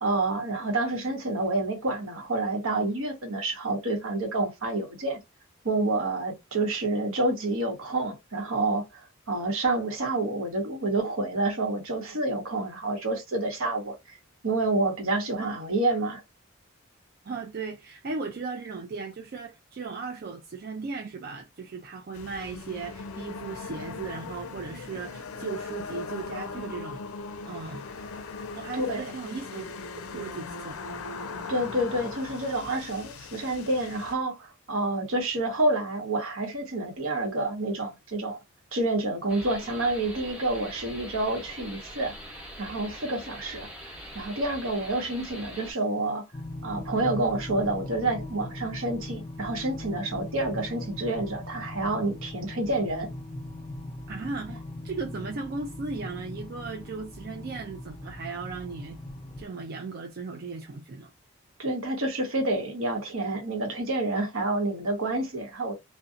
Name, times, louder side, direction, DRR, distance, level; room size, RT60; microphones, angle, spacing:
voice 1, 0.0-5.2 5.6-9.0 9.3-13.9 14.4-16.2 28.8-29.0 31.5-38.4 38.7-42.1 42.6-43.7 44.1-46.2 46.6-53.1 61.6-65.7, right 2 dB, 75° right, 1.0 m, -28 dB
voice 2, 17.2-27.0 27.5-27.8 28.5-29.7 30.1-30.8 54.1-59.0 59.4-61.1, right 4 dB, 45° right, 0.3 m, -37 dB
sound 1, 22.1-34.1, left 4 dB, 90° left, 0.4 m, -39 dB
sound 2, 39.3-45.7, equal, 5° right, 0.8 m, -43 dB
sound 3, 46.3-59.5, left 1 dB, 25° left, 0.4 m, -39 dB
2.6 x 2.1 x 2.4 m
head